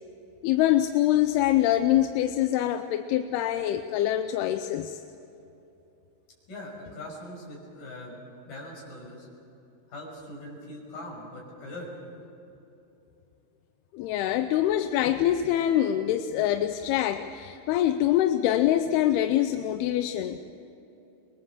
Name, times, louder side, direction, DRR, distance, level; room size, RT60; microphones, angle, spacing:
voice 1, 0.4-5.0 13.9-20.4, left 12 dB, 80° left, 8 dB, 2.6 m, -24 dB
voice 2, 6.5-9.3 9.9-11.9, left 1 dB, 50° left, -2 dB, 7.6 m, -41 dB
26.0 x 22.0 x 7.3 m, 2.9 s
omnidirectional pair, 4.8 m